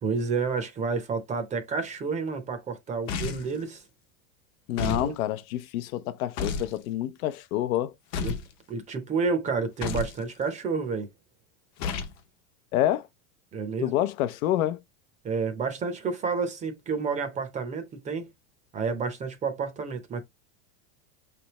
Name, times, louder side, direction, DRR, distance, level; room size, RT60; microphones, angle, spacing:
voice 1, 0.0-3.8 4.7-5.1 8.2-8.4 8.7-11.1 13.5-14.0 15.2-18.3 18.7-20.2, right 5 dB, 15° right, 0.6 m, -30 dB
sound 1, 3.1-3.6 4.8-5.1 6.4-6.7 8.1-8.5 9.8-10.2 11.8-12.2, left 5 dB, 40° left, 0.8 m, -31 dB
voice 2, 4.7-7.9 12.7-13.1 13.8-14.8, left 13 dB, 75° left, 0.7 m, -27 dB
5.2 x 3.4 x 2.9 m
supercardioid pair, 155°, 42 cm